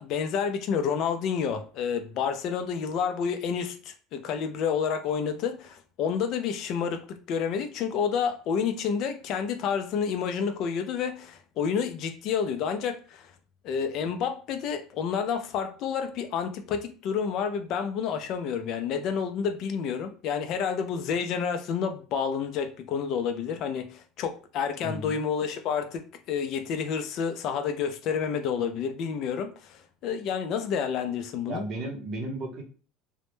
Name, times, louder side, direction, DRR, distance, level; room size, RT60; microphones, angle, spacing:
voice 1, 0.0-13.3 13.6-31.6, left 7 dB, 55° left, 7 dB, 0.3 m, -29 dB
voice 2, 24.8-25.2 31.5-32.6, right 1 dB, 40° right, 0 dB, 0.7 m, -34 dB
2.1 x 2.0 x 3.0 m, 0.39 s
cardioid pair, 135°, 0 cm